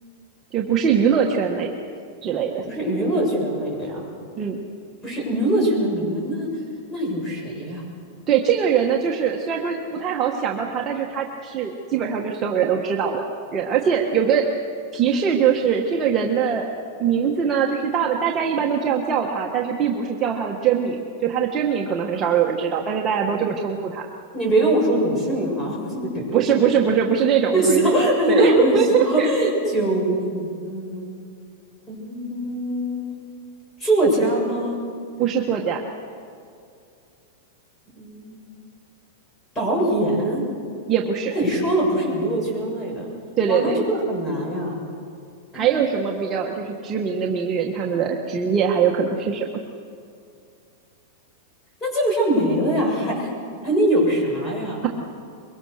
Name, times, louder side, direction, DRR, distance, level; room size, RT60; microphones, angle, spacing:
voice 1, 0.5-1.7 2.2-2.6 4.3-4.6 8.3-13.2 13.5-14.4 14.9-16.7 17.0-24.0 26.3-29.7 30.1-30.2 35.2-35.8 40.9-41.3 43.4-43.8 45.5-49.5, right 7 dB, 25° right, 0 dB, 1.4 m, -22 dB
voice 2, 2.6-4.0 5.0-6.5 6.9-7.8 24.3-26.2 27.5-31.1 31.9-33.1 33.8-34.8 38.0-38.4 39.6-40.4 41.3-43.1 43.5-44.8 45.5-45.9 51.8-53.3 53.6-54.9, right 1 dB, 15° left, -2 dB, 7.1 m, -22 dB
23.5 x 23.0 x 6.6 m, 2.4 s
supercardioid pair, 160°, 0 cm